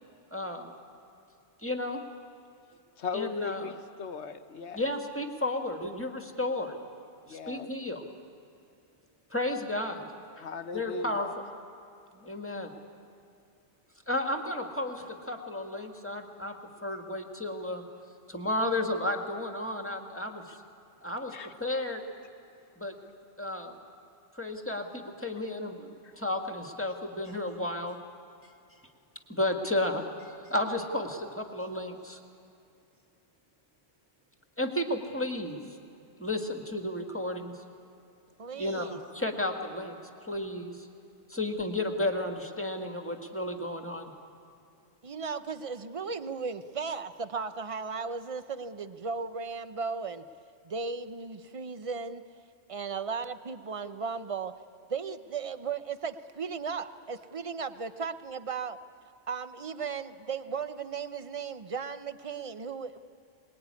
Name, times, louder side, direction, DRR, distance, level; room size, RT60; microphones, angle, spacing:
voice 1, 0.3-0.7 1.6-2.0 3.1-3.7 4.7-6.8 7.3-8.0 9.3-10.1 10.4-10.5 10.7-11.5 12.1-12.7 14.1-16.5 16.8-17.8 18.3-20.4 21.0-22.0 22.8-22.9 23.4-23.7 24.3-25.9 26.2-28.0 29.3-32.2 34.6-35.6 36.2-37.5 38.5-40.9 41.3-44.1, left 1 dB, 10° left, 3 dB, 1.8 m, -33 dB
voice 2, 3.0-4.8 7.2-7.7 10.4-11.3 20.5-20.6 21.3-21.5 26.0-26.1, left 5 dB, 65° left, 8 dB, 1.3 m, -38 dB
voice 3, 38.4-39.0 45.0-50.2 50.6-52.2 52.7-54.5 54.9-58.8 59.3-63.0, right 5 dB, 35° right, 11 dB, 0.7 m, -36 dB
22.5 x 21.0 x 9.6 m, 2.6 s
omnidirectional pair, 1.2 m